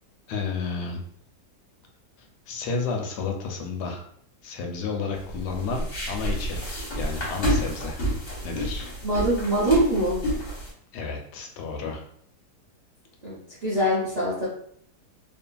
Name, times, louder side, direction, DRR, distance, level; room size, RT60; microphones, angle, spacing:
voice 1, 0.3-1.0 2.5-4.0 4.4-8.0 8.4-8.9 10.9-12.0, left 4 dB, 80° left, 2 dB, 1.1 m, -31 dB
sound 1, 5.1-10.7, equal, 50° left, 1.1 m, -30 dB
voice 2, 9.0-10.2 13.2-14.5, right 1 dB, 50° right, -8 dB, 0.5 m, -23 dB
2.7 x 2.5 x 2.2 m, 0.64 s
omnidirectional pair, 1.8 m